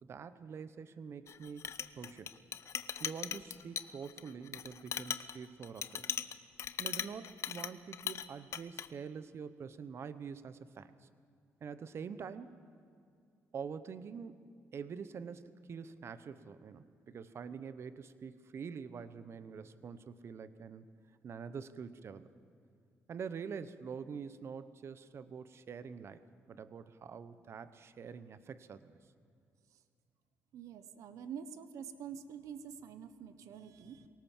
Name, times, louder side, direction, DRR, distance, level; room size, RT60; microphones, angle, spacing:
voice 1, 0.0-2.4 3.0-6.1 6.8-11.1 11.6-12.6 13.5-14.4 14.7-20.9 21.2-22.3 23.1-26.2 26.5-29.0, right 6 dB, 55° right, 14 dB, 1.0 m, -45 dB
Chink clink, 1.3-8.3 8.5-8.9, left 8 dB, 60° left, 0.9 m, -39 dB
voice 2, 30.5-34.1, right 7 dB, 85° right, 12 dB, 1.2 m, -47 dB
24.0 x 18.0 x 7.4 m, 2.3 s
cardioid pair, 95°, 5 cm